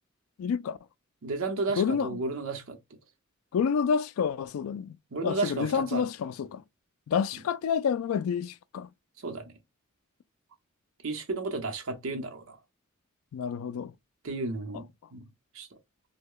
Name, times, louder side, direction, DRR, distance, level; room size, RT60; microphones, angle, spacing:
voice 1, 0.4-0.8 1.8-2.2 3.5-5.0 5.2-6.6 7.1-8.9 13.3-13.9, left 7 dB, 85° left, 0.3 m, -28 dB
voice 2, 1.2-2.8 5.1-6.0 9.2-9.5 11.0-12.6 14.2-15.3 15.5-15.7, right 3 dB, 80° right, 0.8 m, -33 dB
3.1 x 2.2 x 3.6 m
head